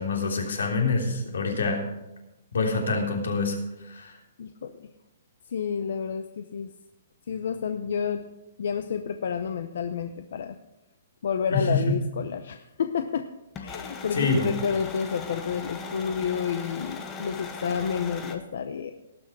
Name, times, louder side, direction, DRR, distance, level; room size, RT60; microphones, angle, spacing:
voice 1, 0.0-1.8 2.5-4.2 11.5-11.9 14.1-14.5, left 3 dB, 90° left, 1 dB, 3.2 m, -26 dB
voice 2, 4.4-4.7 5.5-6.7 7.3-8.3 8.6-10.6 11.2-13.3 13.6-18.9, left 7 dB, 60° left, 8 dB, 0.6 m, -30 dB
sound 1, 13.5-18.4, left 5 dB, 15° left, 0.8 m, -38 dB
18.5 x 6.2 x 4.7 m, 0.92 s
hypercardioid pair, 175°, 0 cm